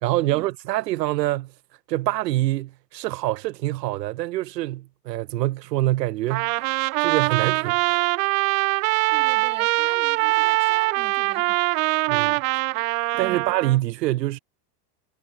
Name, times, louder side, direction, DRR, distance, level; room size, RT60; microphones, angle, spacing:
voice 1, 0.0-1.5 1.9-6.5 7.0-8.0 12.1-12.4 13.2-14.4, right 16 dB, 75° right, 3.2 m, -25 dB
Trumpet, 6.3-13.8, right 23 dB, 50° right, 1.3 m, -23 dB
voice 2, 9.1-11.6 13.1-13.5, right 7 dB, 10° right, 2.0 m, -42 dB
supercardioid pair, 170°, 50 cm